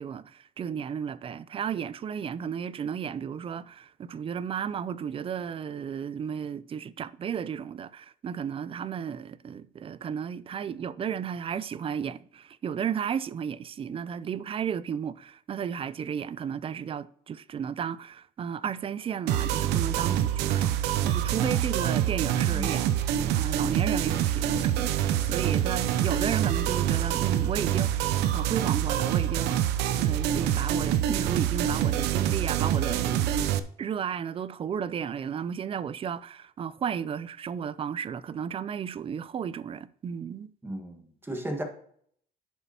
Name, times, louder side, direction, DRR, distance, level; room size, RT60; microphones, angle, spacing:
voice 1, 0.0-22.9 23.3-29.7 30.0-33.3 33.8-40.5, right 8 dB, 35° right, 0.4 m, -33 dB
sound 1, 19.3-33.6, right 11 dB, 85° right, 0.6 m, -26 dB
voice 2, 22.5-22.8 40.6-41.6, right 1 dB, 15° right, 1.6 m, -36 dB
10.5 x 6.9 x 2.9 m
cardioid pair, 110°, 17 cm